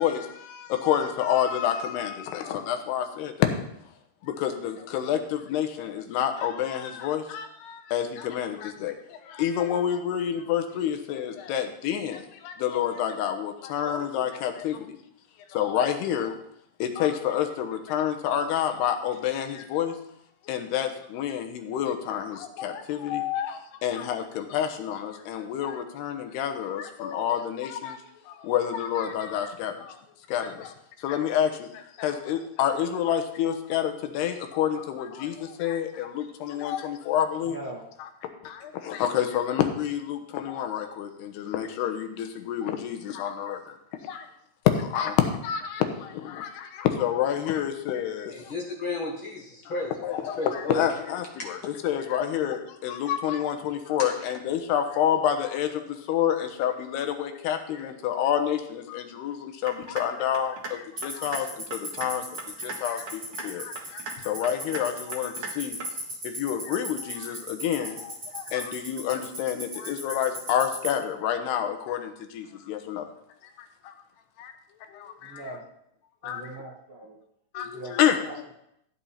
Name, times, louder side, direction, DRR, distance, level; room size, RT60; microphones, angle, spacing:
voice 1, 0.0-3.5 4.2-15.0 15.5-16.4 16.8-20.0 20.5-28.0 28.3-30.0 30.3-37.6 38.4-43.8 44.0-44.3 44.7-48.5 50.0-62.2 62.6-65.8 66.2-73.1 73.8-73.9 74.4-74.5 74.9-75.4 76.2-76.6 77.5-78.2, left 9 dB, 90° left, 7 dB, 3.1 m, -28 dB
voice 2, 37.4-37.9 75.2-75.7 76.2-77.2 77.7-78.5, right 2 dB, 55° right, -3 dB, 1.5 m, -41 dB
voice 3, 48.3-49.9 50.4-50.9 51.4-51.5 54.0-54.1, left 2 dB, 55° left, 0 dB, 1.4 m, -32 dB
sound 1, 59.7-60.0 60.3-60.7 61.0-61.4 61.7-62.1 62.4-62.8 63.1-63.5 63.7-64.1 64.4-64.8 65.1-65.5 65.8-65.9, right 4 dB, 80° right, 1.0 m, -36 dB
Tick-tock, 61.0-70.9, right 3 dB, 25° right, 6.5 m, -35 dB
14.5 x 9.0 x 4.2 m, 0.76 s
omnidirectional pair, 4.5 m